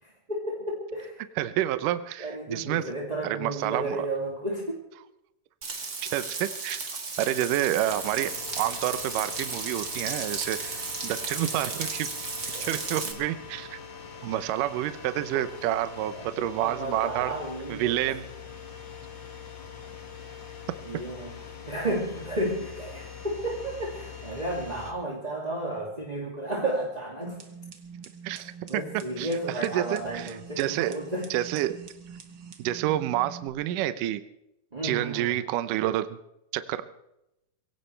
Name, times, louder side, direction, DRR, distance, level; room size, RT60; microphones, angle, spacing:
voice 1, 0.0-1.2 2.2-4.8 12.5-12.7 13.0-13.2 15.3-15.4 16.1-18.0 20.8-21.3 21.7-27.4 28.3-31.3 34.7-35.4, right 1 dB, 15° right, -2 dB, 1.7 m, -33 dB
voice 2, 1.4-2.9 3.2-4.1 6.1-6.9 7.2-12.1 12.6-13.8 14.2-17.3 17.7-18.2 28.2-28.8 29.2-29.3 29.6-31.0 31.3-31.8 32.6-34.2 34.8-36.2 36.5-36.8, right 13 dB, 75° right, 12 dB, 2.2 m, -29 dB
Frying (food), 5.6-13.1, right 4 dB, 30° right, 2.0 m, -34 dB
sound 1, 7.9-24.9, left 6 dB, 40° left, 2.0 m, -43 dB
sound 2, 27.2-33.5, right 6 dB, 55° right, 1.2 m, -45 dB
23.5 x 17.0 x 3.3 m, 0.86 s
omnidirectional pair, 4.2 m